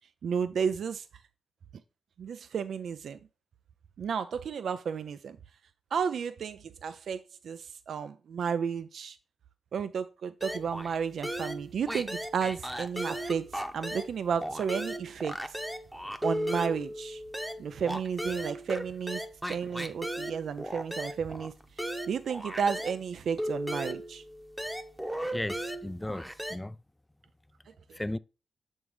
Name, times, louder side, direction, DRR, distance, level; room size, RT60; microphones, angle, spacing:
voice 1, 0.2-1.1 2.2-3.2 4.0-5.4 5.9-9.2 9.7-15.6 16.2-17.2 17.6-19.2 19.5-24.2, right 6 dB, 70° right, 0.4 m, -33 dB
sound 1, 10.4-11.0 11.2-14.1 14.4-23.0 23.4-26.6, equal, 5° right, 0.8 m, -36 dB
voice 2, 25.3-26.8 28.0-28.2, left 1 dB, 10° left, 0.3 m, -35 dB
7.0 x 5.4 x 3.2 m
cardioid pair, 70°, 0 cm